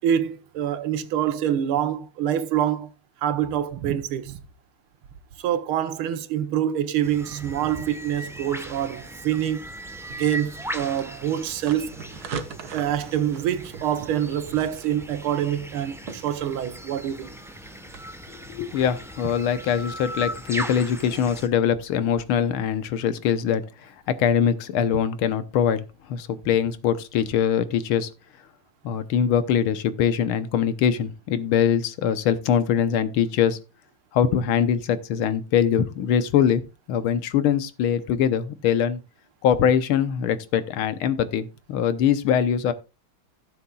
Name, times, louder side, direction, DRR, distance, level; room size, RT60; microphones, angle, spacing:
voice 1, 0.0-2.9 3.2-4.4 5.4-9.7 10.2-11.9 12.7-17.3, right 10 dB, 80° right, 1.7 m, -26 dB
sound 1, 7.0-21.5, equal, 5° right, 0.3 m, -38 dB
sound 2, 10.1-18.0, right 6 dB, 55° right, 1.4 m, -42 dB
voice 2, 18.5-23.6 24.2-25.8 26.1-28.1 28.8-33.6 34.1-36.6 36.9-39.0 39.4-42.7, left 8 dB, 80° left, 1.7 m, -22 dB
16.5 x 7.0 x 2.3 m
omnidirectional pair, 2.3 m